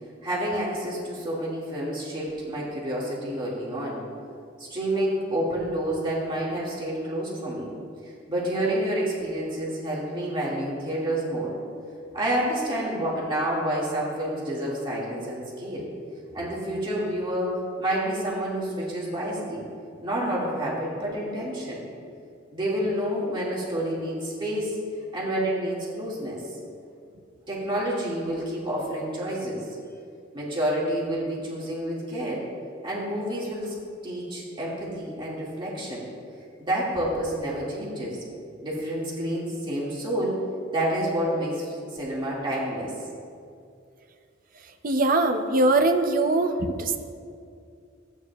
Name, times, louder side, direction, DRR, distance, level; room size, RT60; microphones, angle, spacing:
voice 1, 0.2-4.0 4.6-7.7 8.1-11.5 12.1-15.9 16.3-19.6 20.0-21.8 22.5-24.8 25.1-26.4 27.5-29.8 30.3-32.4 32.8-33.7 34.0-36.0 36.6-38.2 38.6-40.4 40.7-42.9, right 1 dB, 25° right, -6 dB, 1.9 m, -29 dB
voice 2, 44.8-47.0, right 2 dB, 45° right, 6 dB, 0.6 m, -22 dB
14.5 x 8.9 x 2.3 m, 2.4 s
head